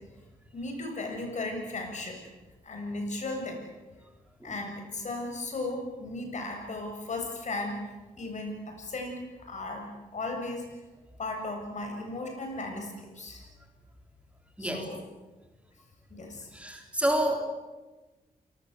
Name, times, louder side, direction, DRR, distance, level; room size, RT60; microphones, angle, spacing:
voice 1, 0.5-2.2 2.6-3.6 4.4-7.8 8.2-9.2 9.5-10.6 11.2-13.4 14.6-15.0 16.1-16.5, left 2 dB, 55° left, 3 dB, 7.9 m, -36 dB
voice 2, 16.5-17.4, right 1 dB, 10° right, 3 dB, 3.9 m, -28 dB
28.5 x 19.5 x 8.4 m, 1.2 s
cardioid pair, 100°, 15 cm